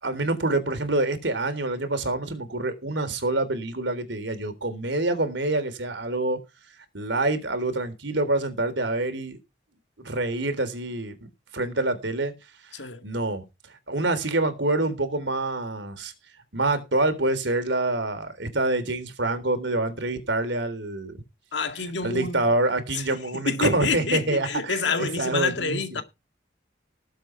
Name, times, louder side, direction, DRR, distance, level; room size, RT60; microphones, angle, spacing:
voice 1, 0.0-6.4 6.9-9.4 10.0-11.2 11.5-12.3 13.0-13.4 13.9-16.1 16.5-21.2 22.0-26.0, right 2 dB, 75° right, 3.7 m, -26 dB
voice 2, 12.7-13.0 21.5-22.4 22.9-23.0 23.5-26.0, left 4 dB, 70° left, 2.1 m, -28 dB
19.0 x 8.0 x 4.7 m
head